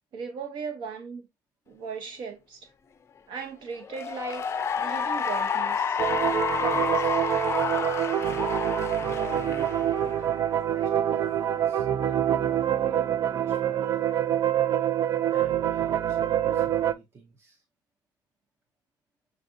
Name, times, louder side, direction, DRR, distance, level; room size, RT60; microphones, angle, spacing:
voice 1, 0.1-1.2 1.7-2.7 3.3-4.4 4.8-6.0 6.6-6.9, right 5 dB, 70° right, 1.1 m, -37 dB
Cheering / Applause, 3.8-10.5, left 6 dB, 30° left, 0.4 m, -30 dB
sound 1, 6.0-16.9, right 10 dB, 50° right, 0.4 m, -26 dB
voice 2, 7.6-8.4 9.0-14.1 15.3-17.6, right 3 dB, 30° right, 0.8 m, -47 dB
6.3 x 2.6 x 2.4 m
cardioid pair, 120°, 8 cm